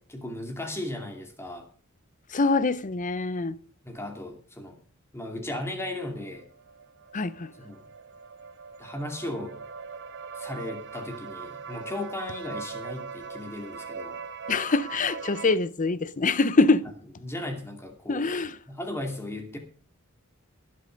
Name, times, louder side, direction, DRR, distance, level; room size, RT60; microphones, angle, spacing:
voice 1, 0.0-1.7 3.8-4.8 5.1-6.4 7.6-7.9 8.8-9.6 10.4-14.2 17.2-18.3 18.7-19.6, left 1 dB, 10° left, 2.5 m, -36 dB
voice 2, 2.3-3.6 7.1-7.5 14.5-16.9 18.1-18.6, left 3 dB, 35° left, 0.7 m, -24 dB
sound 1, 6.2-15.5, right 5 dB, 55° right, 0.9 m, -40 dB
20.0 x 7.8 x 5.2 m
head